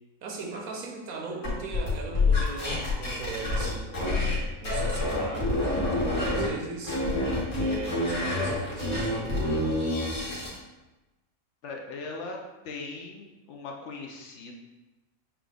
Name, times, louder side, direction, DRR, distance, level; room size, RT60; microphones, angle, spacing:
voice 1, 0.2-7.0 7.5-9.8, right 3 dB, 85° right, 1 dB, 1.3 m, -38 dB
sound 1, 1.4-4.4 4.6-6.5 6.8-10.6, left 2 dB, 80° left, 1.9 m, -27 dB
voice 2, 11.6-12.4 12.6-14.5, left 3 dB, 65° left, 1 dB, 0.8 m, -39 dB
6.0 x 2.4 x 3.4 m, 1.1 s
omnidirectional pair, 1.5 m